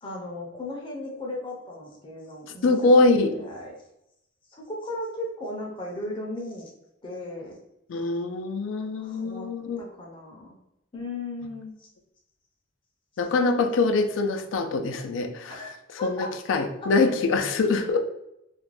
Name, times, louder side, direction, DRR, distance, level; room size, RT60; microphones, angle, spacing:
voice 1, 0.0-3.7 4.5-6.7 7.0-7.6 9.0-9.5 9.8-10.5 10.9-11.7 13.4-13.5 15.5-16.6, left 1 dB, 25° left, -2 dB, 0.5 m, -36 dB
voice 2, 2.6-3.3 7.9-9.8 13.2-15.6 16.0-18.0, left 3 dB, 90° left, 6 dB, 0.4 m, -23 dB
2.4 x 2.1 x 3.1 m, 0.85 s
head